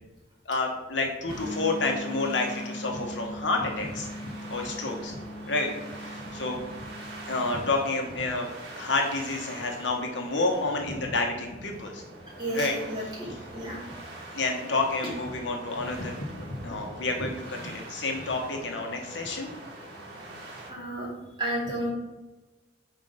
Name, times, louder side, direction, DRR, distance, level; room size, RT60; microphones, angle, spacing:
voice 1, 0.5-4.1 4.5-5.7 6.0-6.9 7.3-8.5 8.7-12.0 12.5-12.7 13.2-13.3 14.3-19.5, left 3 dB, 85° left, 2 dB, 1.1 m, -29 dB
sound 1, 1.3-20.7, right 2 dB, 85° right, 1.7 m, -44 dB
sound 2, 1.4-7.8, equal, 20° left, 1.2 m, -40 dB
voice 2, 12.4-13.8 20.7-21.1 21.4-21.9, right 1 dB, 25° right, -6 dB, 2.4 m, -32 dB
5.6 x 4.4 x 5.3 m, 1.1 s
head